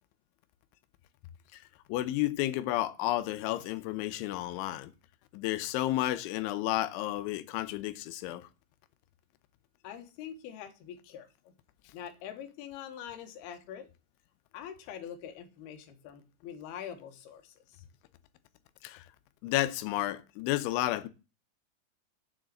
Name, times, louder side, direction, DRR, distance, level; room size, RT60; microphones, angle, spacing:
voice 1, 1.9-4.9 5.3-8.5 18.8-19.0 19.4-21.1, left 15 dB, 85° left, 3.2 m, -31 dB
voice 2, 9.8-11.5 11.9-13.9 14.5-17.8, left 9 dB, 70° left, 3.1 m, -44 dB
7.9 x 6.3 x 7.6 m
omnidirectional pair, 5.4 m